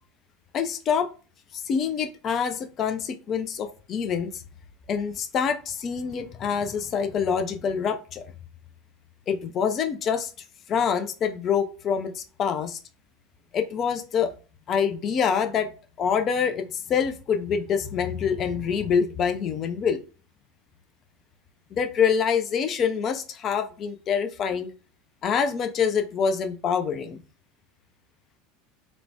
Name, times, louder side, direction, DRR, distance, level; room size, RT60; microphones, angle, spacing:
voice 1, 0.5-1.1 1.5-4.4 4.9-8.3 9.3-10.3 10.7-12.8 13.5-14.3 14.7-15.7 16.0-20.0 21.7-24.7 25.2-27.2, left 7 dB, 35° left, 7 dB, 0.4 m, -26 dB
2.9 x 2.1 x 2.6 m, 0.36 s
figure-of-eight pair, 75°, 0 cm